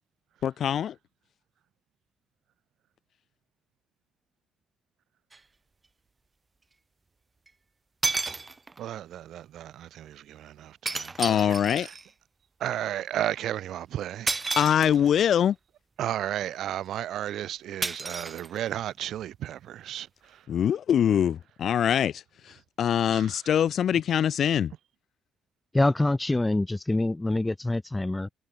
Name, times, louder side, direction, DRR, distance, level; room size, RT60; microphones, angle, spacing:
voice 1, 0.4-0.9 11.2-11.9 14.6-15.5 20.5-22.2 22.8-24.7, left 9 dB, 65° left, 1.4 m, -23 dB
sound 1, 5.3-5.4 7.5-7.6 8.0-8.9 10.9-12.1 14.3-15.3 17.8-18.9, right 3 dB, 25° right, 3.2 m, -32 dB
voice 2, 8.8-11.9 12.6-14.4 16.0-20.4 23.1-23.4, right 11 dB, 75° right, 1.3 m, -34 dB
voice 3, 25.7-28.3, left 2 dB, 15° left, 0.9 m, -25 dB
cardioid pair, 90°, 0 cm